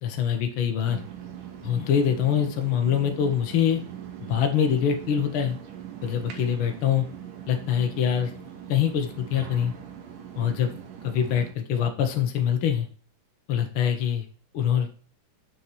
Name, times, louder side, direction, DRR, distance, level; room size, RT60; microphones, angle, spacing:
voice 1, 0.0-1.0 1.6-3.8 4.2-5.6 6.0-7.0 7.5-8.3 8.7-9.7 10.4-10.7 11.0-12.9 13.5-14.3 14.5-15.0, left 8 dB, 55° left, 5 dB, 1.5 m, -24 dB
sound 1, 0.8-11.5, right 9 dB, 85° right, 2.8 m, -41 dB
6.6 x 6.1 x 4.5 m, 0.41 s
omnidirectional pair, 3.6 m